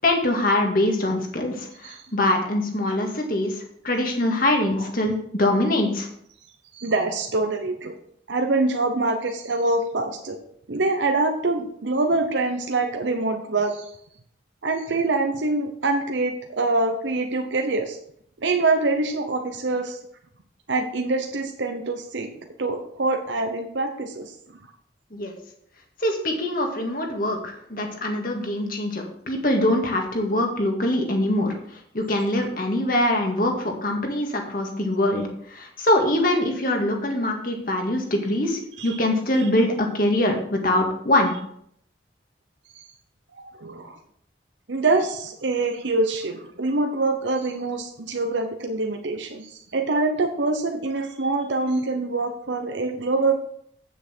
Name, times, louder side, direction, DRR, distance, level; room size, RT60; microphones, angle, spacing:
voice 1, 0.0-6.1 25.1-25.4 26.0-41.3, left 1 dB, 50° left, 2 dB, 1.9 m, -23 dB
voice 2, 6.7-7.9 8.3-10.4 10.7-13.9 14.6-18.0 18.4-20.0 20.7-22.3 22.6-24.3 38.8-39.0 42.7-42.9 43.4-43.9 44.7-53.4, right 3 dB, 85° right, 4 dB, 0.9 m, -25 dB
8.7 x 7.7 x 4.5 m, 0.67 s
head